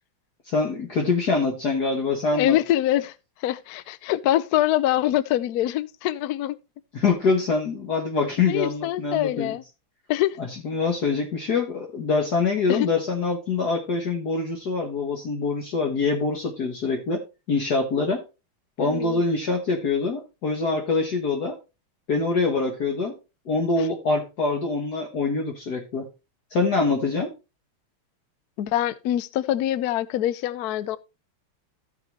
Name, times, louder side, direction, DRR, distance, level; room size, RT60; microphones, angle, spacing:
voice 1, 0.4-2.6 6.9-9.6 10.4-18.2 18.8-21.6 22.1-23.1 23.4-26.1 26.5-27.3, left 4 dB, 50° left, 1.7 m, -24 dB
voice 2, 2.3-3.1 3.4-6.6 8.5-9.6 10.1-10.4 12.7-12.9 18.8-19.2 28.6-31.0, left 13 dB, 80° left, 0.8 m, -24 dB
15.0 x 5.9 x 3.0 m
omnidirectional pair, 2.4 m